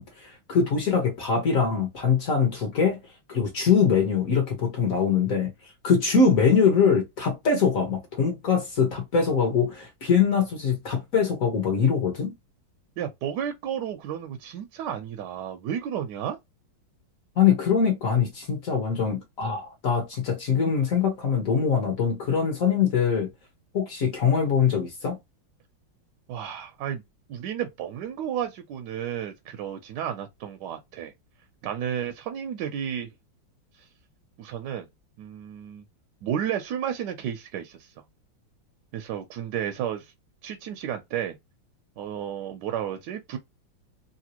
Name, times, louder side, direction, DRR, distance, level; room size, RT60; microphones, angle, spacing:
voice 1, 0.0-3.0 3.3-5.5 5.8-12.3 17.4-23.3 23.7-25.2, left 6 dB, 50° left, 1.1 m, -23 dB
voice 2, 13.0-16.4 26.3-27.0 27.3-31.1 31.6-33.1 33.8-33.9 34.4-34.9 35.2-35.8 36.2-37.9 38.9-40.1 40.4-41.4 42.0-43.4, right 9 dB, 75° right, 1.0 m, -32 dB
3.3 x 2.6 x 2.8 m
omnidirectional pair, 2.2 m